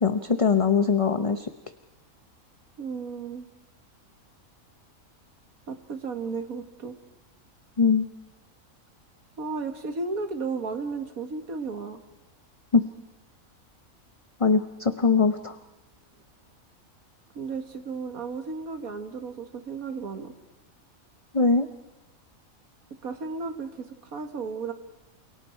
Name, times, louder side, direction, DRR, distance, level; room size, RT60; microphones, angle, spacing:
voice 1, 0.0-1.5 7.8-8.1 12.7-12.8 14.4-15.6 21.3-21.7, left 5 dB, 30° left, 9 dB, 0.8 m, -21 dB
voice 2, 2.8-3.5 5.7-7.0 9.4-12.0 17.4-20.3 23.0-24.7, right 4 dB, 90° right, 7 dB, 2.2 m, -34 dB
29.0 x 28.0 x 4.5 m, 1.1 s
omnidirectional pair, 1.4 m